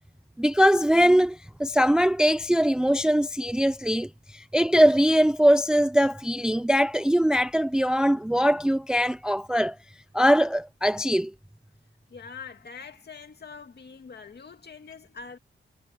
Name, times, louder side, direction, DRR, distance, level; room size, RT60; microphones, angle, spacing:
voice 1, 0.4-9.8 10.1-11.3, equal, 5° right, 0.4 m, -22 dB
voice 2, 12.1-15.4, left 5 dB, 50° left, 2.3 m, -44 dB
wide cardioid pair, 175°, 21 cm